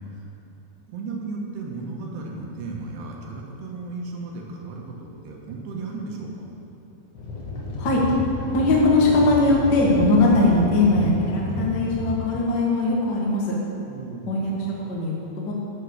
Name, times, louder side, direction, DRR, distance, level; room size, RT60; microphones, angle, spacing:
voice 1, 0.9-6.5 13.9-14.6, right 3 dB, 75° right, -1 dB, 3.3 m, -35 dB
sound 1, 7.1-12.1, left 3 dB, 50° left, 1.9 m, -31 dB
voice 2, 8.5-13.5 14.3-15.5, left 2 dB, 75° left, -4 dB, 0.9 m, -20 dB
10.0 x 7.8 x 6.5 m, 2.9 s
omnidirectional pair, 5.1 m